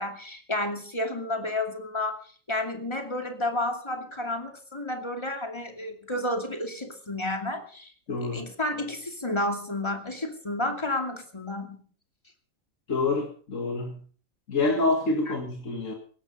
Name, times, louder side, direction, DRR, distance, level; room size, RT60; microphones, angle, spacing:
voice 1, 0.0-2.2 2.5-7.9 8.2-11.8 15.3-15.4, left 1 dB, 20° left, 4 dB, 2.6 m, -31 dB
voice 2, 8.1-8.5 12.9-14.0 14.5-15.9, left 3 dB, 75° left, 2 dB, 2.3 m, -27 dB
17.5 x 14.0 x 5.5 m, 0.44 s
omnidirectional pair, 1.4 m